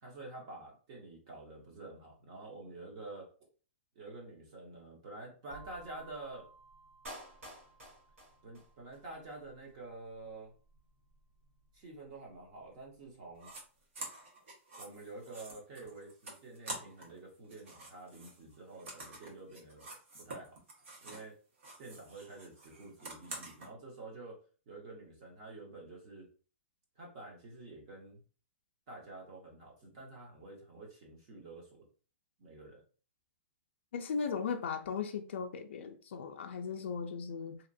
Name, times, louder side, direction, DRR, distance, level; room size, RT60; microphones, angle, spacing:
voice 1, 0.0-3.3 3.9-6.5 8.4-10.5 11.7-13.5 14.8-19.9 20.2-20.6 21.0-21.3 21.8-24.4 24.7-26.3 27.0-28.2 28.9-31.8 32.4-32.8, right 2 dB, 30° right, 0.7 m, -49 dB
sound 1, 5.5-13.3, right 4 dB, ahead, 0.5 m, -60 dB
Clapping, 7.0-9.0 9.3-9.4, equal, 90° right, 1.5 m, -50 dB
sound 2, 13.4-13.6 13.9-17.2 17.4-21.3 21.6-23.7, right 2 dB, 65° right, 1.1 m, -47 dB
voice 2, 33.9-37.6, left 6 dB, 60° left, 0.3 m, -37 dB
2.8 x 2.4 x 2.6 m
hypercardioid pair, 180°, 7 cm